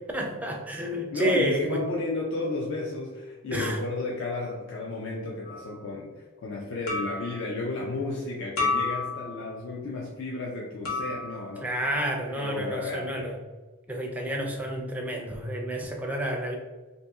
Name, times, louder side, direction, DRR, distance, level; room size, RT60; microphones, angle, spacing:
voice 1, 0.1-1.8 3.5-3.8 11.6-13.4 13.9-16.6, right 1 dB, 5° right, 0 dB, 0.4 m, -29 dB
voice 2, 1.1-11.7 12.3-13.3, left 3 dB, 60° left, -2 dB, 0.5 m, -33 dB
sound 1, 5.5-5.7 6.9-7.4 8.6-9.5 10.9-11.5, left 3 dB, 85° left, 1.0 m, -30 dB
2.7 x 2.7 x 3.4 m, 1.3 s
head